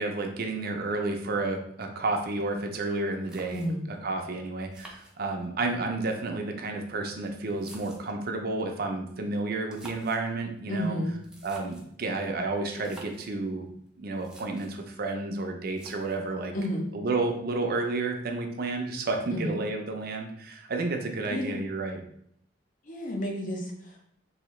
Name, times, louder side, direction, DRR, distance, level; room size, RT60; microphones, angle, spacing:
voice 1, 0.0-3.6 4.0-11.0 11.4-13.7 14.0-16.5 16.9-22.0, right 3 dB, 55° right, 4 dB, 0.6 m, -31 dB
sound 1, 3.3-4.0 4.7-5.7 6.6-8.3 9.5-10.3 11.2-12.0 12.7-13.3 13.9-14.0 14.1-14.8 15.7-16.3, right 1 dB, 5° right, 0.6 m, -50 dB
voice 2, 3.5-3.8 10.7-11.1 16.5-16.9 19.3-19.5 21.3-21.6 22.8-24.1, equal, 45° left, 1 dB, 0.8 m, -31 dB
3.9 x 2.7 x 3.1 m, 0.71 s
head